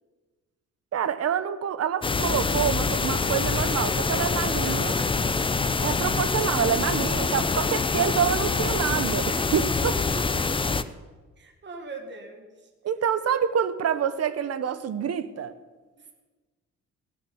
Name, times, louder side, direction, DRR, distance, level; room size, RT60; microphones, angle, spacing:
voice 1, 0.9-5.0 5.8-10.0 12.8-15.6, right 8 dB, 55° right, 14 dB, 0.9 m, -27 dB
sound 1, 2.0-10.8, left 4 dB, 15° left, 0.6 m, -25 dB
voice 2, 4.2-5.3 10.0-10.6 11.4-12.7 16.0-16.1, right 3 dB, 35° right, 4 dB, 1.9 m, -42 dB
17.0 x 7.1 x 7.1 m, 1.3 s
cardioid pair, 90°, 30 cm